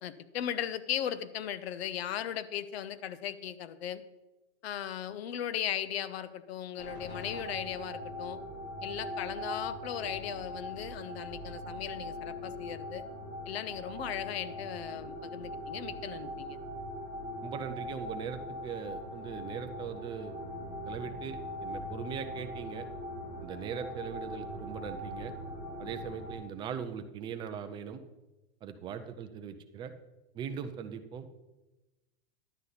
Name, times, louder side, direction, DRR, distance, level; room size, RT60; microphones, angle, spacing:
voice 1, 0.0-4.0 4.6-8.4 8.8-13.0 13.5-16.6, left 10 dB, 75° left, 15 dB, 0.8 m, -37 dB
sound 1, 6.8-26.3, left 1 dB, 35° left, 3.3 m, -41 dB
voice 2, 17.4-20.3 20.8-22.9 23.4-25.3 25.8-28.0 28.6-29.9 30.3-31.3, right 7 dB, 15° right, 8 dB, 0.4 m, -40 dB
11.0 x 8.2 x 4.0 m, 1.1 s
supercardioid pair, 155°, 32 cm